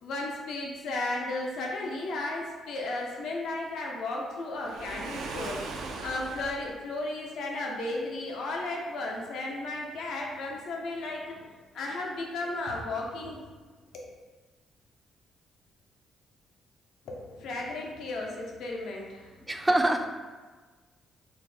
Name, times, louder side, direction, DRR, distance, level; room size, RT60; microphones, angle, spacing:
voice 1, 0.0-5.6 6.0-11.5 11.7-13.4 13.9-14.0 17.1-19.3, left 2 dB, 75° left, -1 dB, 0.6 m, -34 dB
Waves surf, 4.6-6.7, right 3 dB, 85° right, 0.4 m, -38 dB
voice 2, 19.5-20.1, right 1 dB, 15° right, 4 dB, 0.4 m, -24 dB
4.3 x 2.1 x 3.4 m, 1.4 s
cardioid pair, 90°, 0 cm